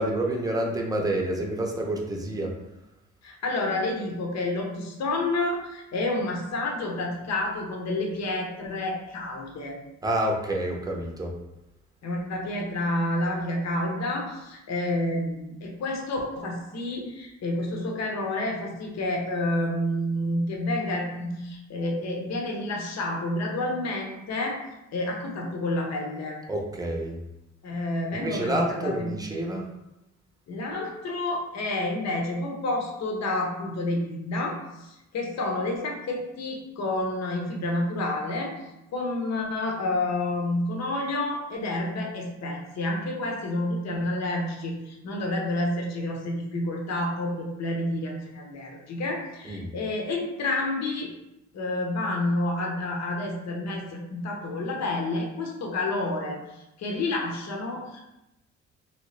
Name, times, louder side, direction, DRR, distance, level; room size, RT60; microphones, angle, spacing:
voice 1, 0.0-2.5 10.0-11.3 26.5-27.2 28.1-29.6 49.4-49.7, right 1 dB, 10° right, 0 dB, 0.7 m, -28 dB
voice 2, 3.2-9.8 12.0-24.6 24.9-26.4 27.6-29.2 30.5-38.5 38.9-51.1 51.5-58.0, left 2 dB, 60° left, 0 dB, 0.8 m, -29 dB
3.0 x 2.9 x 3.2 m, 0.91 s
cardioid pair, 90°, 30 cm